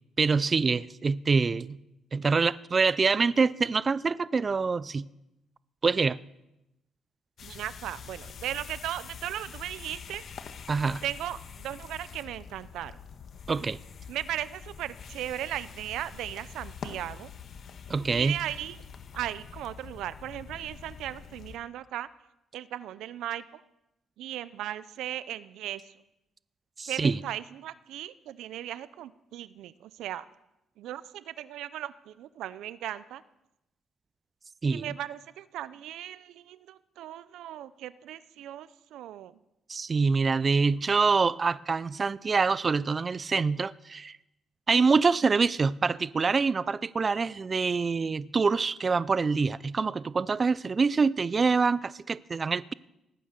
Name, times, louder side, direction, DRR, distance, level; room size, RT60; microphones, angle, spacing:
voice 1, 0.2-1.8 2.1-5.1 5.8-6.2 10.7-11.0 13.5-13.8 17.9-18.4 26.8-27.2 34.6-34.9 39.7-44.2 44.7-52.7, right 4 dB, 35° right, 0.4 m, -25 dB
sound 1, 7.4-21.6, left 6 dB, 60° left, 1.3 m, -45 dB
voice 2, 7.4-10.2 11.0-13.0 14.1-17.3 18.1-18.8 19.1-22.1 22.5-23.6 24.2-25.9 26.9-30.3 30.8-33.2 34.6-39.4, right 12 dB, 85° right, 0.5 m, -37 dB
18.5 x 9.3 x 6.6 m
cardioid pair, 90°, 0 cm